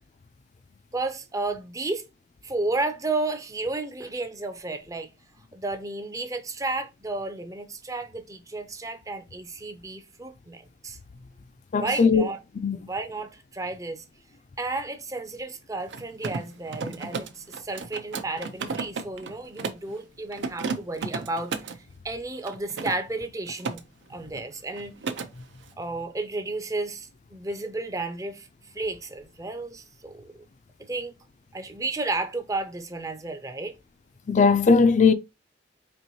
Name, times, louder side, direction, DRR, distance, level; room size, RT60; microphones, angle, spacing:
voice 1, 0.9-2.1 2.4-5.1 5.5-11.0 11.8-12.4 12.9-14.0 14.6-23.8 24.1-24.9 25.8-28.5 28.7-30.3 30.8-31.1 31.5-33.8, right 2 dB, 20° right, 0.5 m, -32 dB
voice 2, 11.7-12.2 12.6-12.8 34.3-35.1, left 5 dB, 40° left, 0.4 m, -18 dB
Mechanisms, 15.8-19.9 20.3-21.8 22.4-23.8 24.1-24.4 24.7-25.3, right 4 dB, 75° right, 0.5 m, -34 dB
4.4 x 3.0 x 2.7 m
head